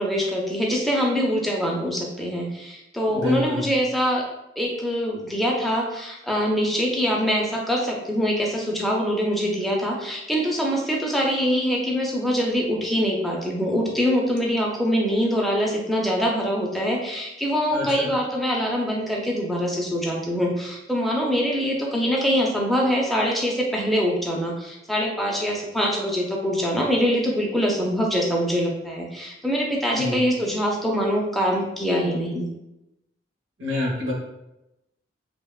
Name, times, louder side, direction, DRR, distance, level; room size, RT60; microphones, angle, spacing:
voice 1, 0.0-4.2 4.6-32.5, equal, ahead, -2 dB, 0.3 m, -24 dB
voice 2, 3.1-3.6 17.7-18.1 29.9-30.2 33.6-34.1, left 2 dB, 70° right, -2 dB, 0.7 m, -27 dB
2.8 x 2.0 x 2.2 m, 0.91 s
head